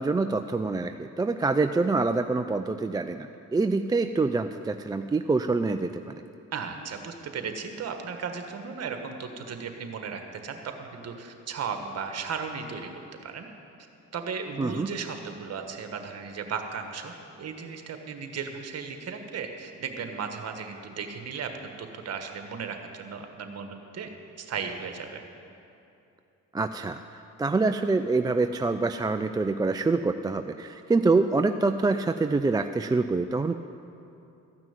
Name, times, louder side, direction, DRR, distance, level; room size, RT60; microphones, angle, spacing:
voice 1, 0.0-6.2 14.6-14.9 26.5-33.6, right 3 dB, 15° right, 8 dB, 0.3 m, -26 dB
voice 2, 6.5-12.9 13.2-13.5 14.1-21.5 21.8-24.1 24.4-25.2, right 6 dB, 55° right, 5 dB, 1.4 m, -36 dB
14.0 x 6.1 x 9.0 m, 2.7 s
cardioid pair, 90°, 30 cm